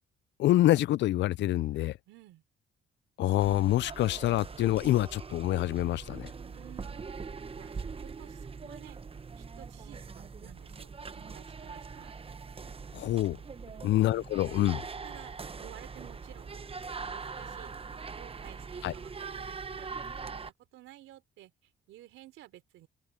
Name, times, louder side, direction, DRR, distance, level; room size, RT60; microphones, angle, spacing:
voice 1, 0.4-2.0 3.2-6.3 12.9-13.4 13.8-14.8 18.8-18.9, left 15 dB, 65° left, 0.4 m, -26 dB
voice 2, 2.1-2.4 6.5-7.1 7.6-9.0 9.4-12.1 13.6-14.0 14.4-14.6 15.0-15.3 15.6-16.6 17.0-19.9 20.2-22.9, right 15 dB, 90° right, 3.8 m, -53 dB
sound 1, 3.4-20.5, right 5 dB, 30° right, 1.0 m, -42 dB
open air
cardioid pair, 90°, 20 cm